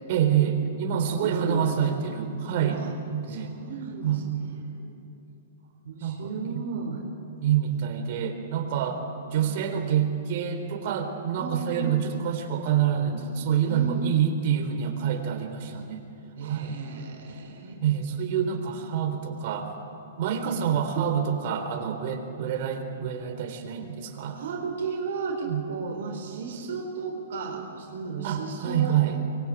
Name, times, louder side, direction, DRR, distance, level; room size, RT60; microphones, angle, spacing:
voice 1, 0.1-2.8 3.1-3.6 4.0-4.4 6.0-6.6 7.4-9.0 9.3-16.0 16.4-16.8 17.8-19.7 20.2-24.4 25.4-25.7 28.2-29.2, right 8 dB, 50° right, 5 dB, 4.0 m, -27 dB
voice 2, 1.2-1.9 2.7-2.9 3.3-4.9 5.8-7.1 9.3-9.7 11.4-12.0 13.6-14.1 16.4-17.8 20.2-20.6 24.3-29.0, right 5 dB, 65° right, 2 dB, 4.2 m, -34 dB
24.0 x 22.0 x 9.2 m, 2.8 s
hypercardioid pair, 120°, 0 cm